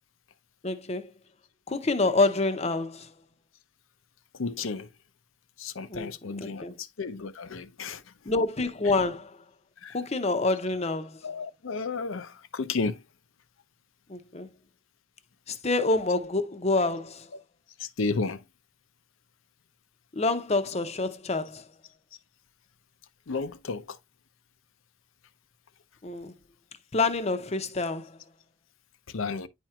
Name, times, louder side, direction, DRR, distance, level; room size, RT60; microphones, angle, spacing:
voice 1, 0.6-1.1 1.7-3.1 5.9-6.1 6.4-6.8 8.3-9.4 9.9-11.2 14.1-14.5 15.5-17.3 20.2-21.6 26.0-26.3 26.9-28.2, left 3 dB, 30° left, 0.7 m, -27 dB
voice 2, 4.3-4.9 5.6-8.0 9.8-10.0 11.2-13.0 17.8-18.4 23.3-24.0 29.1-29.5, left 4 dB, 80° left, 0.6 m, -32 dB
10.0 x 4.4 x 2.3 m
head